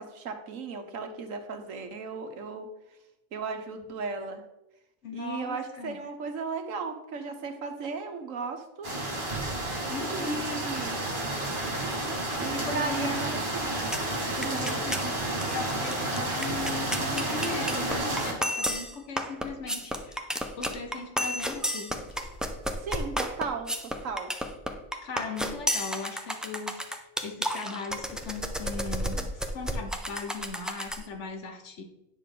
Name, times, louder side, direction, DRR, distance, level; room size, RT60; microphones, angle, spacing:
voice 1, 0.0-2.7 3.3-4.4 5.1-8.9 10.2-11.0 12.4-13.9 14.4-14.8 22.8-24.3, right 4 dB, 75° right, 6 dB, 1.4 m, -36 dB
voice 2, 5.0-6.0 9.9-10.4 12.3-13.2 14.3-22.0 25.0-31.8, left 4 dB, 65° left, 5 dB, 1.4 m, -38 dB
sound 1, 8.8-18.3, right 1 dB, 40° right, 2.3 m, -31 dB
sound 2, 13.9-14.1 14.4-15.1 15.4-15.5 15.7-31.0, equal, ahead, 0.3 m, -32 dB
9.8 x 6.6 x 3.8 m, 0.91 s
omnidirectional pair, 1.4 m